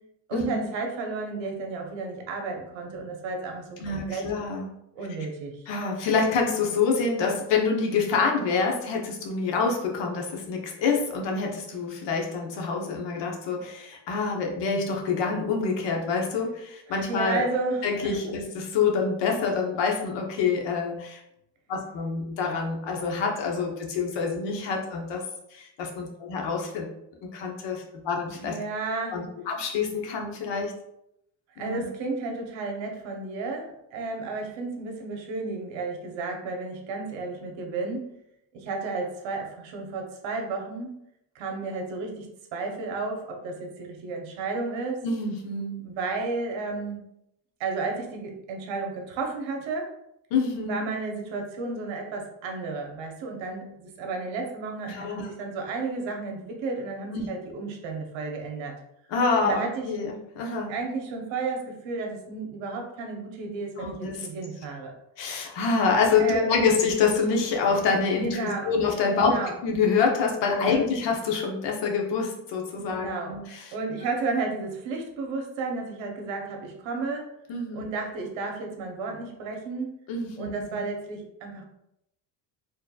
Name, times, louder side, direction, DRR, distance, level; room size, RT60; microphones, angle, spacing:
voice 1, 0.3-4.3 5.0-5.5 16.9-18.2 28.4-29.2 31.6-38.1 38.5-41.0 41.3-45.0 45.8-47.0 47.6-49.9 50.6-58.8 59.4-59.9 60.7-64.9 66.2-66.6 68.1-68.7 69.1-69.5 70.5-70.8 72.8-73.4 73.7-77.3 77.7-79.9 80.4-81.7, right 3 dB, 75° right, 2 dB, 1.0 m, -32 dB
voice 2, 3.8-4.8 5.7-17.4 17.8-21.2 21.7-25.2 25.5-26.9 27.2-28.6 29.1-30.7 31.6-31.8 45.0-45.8 50.3-50.8 54.9-55.3 57.1-57.3 59.1-60.8 63.8-64.3 65.2-73.7 77.5-77.9 80.1-80.8, left 5 dB, 65° left, 1 dB, 0.9 m, -26 dB
4.5 x 3.0 x 2.3 m, 0.80 s
cardioid pair, 155°, 45 cm